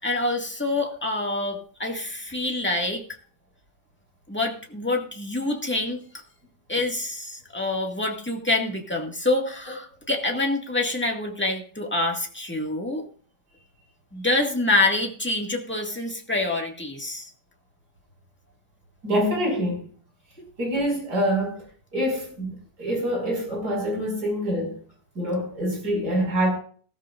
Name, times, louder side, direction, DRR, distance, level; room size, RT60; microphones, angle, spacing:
voice 1, 0.0-3.0 4.3-6.0 6.7-13.0 14.1-17.3, left 2 dB, 5° left, 1.9 m, -26 dB
voice 2, 19.0-19.8 20.6-21.6 21.9-24.7 25.2-26.5, equal, 65° right, 6.0 m, -25 dB
16.5 x 14.0 x 2.5 m
omnidirectional pair, 1.9 m